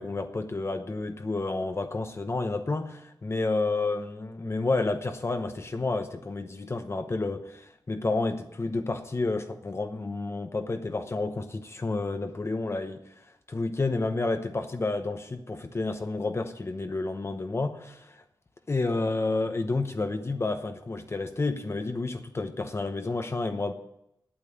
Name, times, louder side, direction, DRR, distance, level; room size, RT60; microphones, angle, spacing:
voice 1, 0.0-13.0 13.5-18.2 18.7-23.7, left 3 dB, 35° left, 0.9 m, -30 dB
9.0 x 8.8 x 9.4 m
wide cardioid pair, 90°, 7 cm